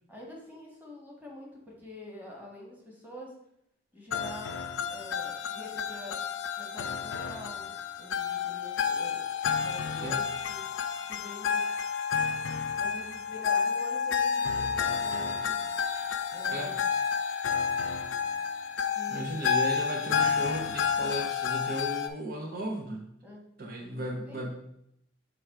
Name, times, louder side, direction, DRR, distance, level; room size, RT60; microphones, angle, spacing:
voice 1, 0.1-3.3 3.9-4.5 4.9-6.2 6.6-7.7 8.0-10.6 11.1-11.6 12.8-15.6 16.3-16.9 18.9-19.4 23.2-23.4 24.3-24.4, left 1 dB, 10° right, -3 dB, 1.4 m, -46 dB
sound 1, 4.1-22.1, left 6 dB, 90° left, 0.4 m, -30 dB
voice 2, 9.8-10.3 16.5-16.8 19.1-23.0 23.6-24.5, right 1 dB, 55° right, 1 dB, 0.7 m, -36 dB
6.1 x 3.3 x 4.7 m, 0.76 s
head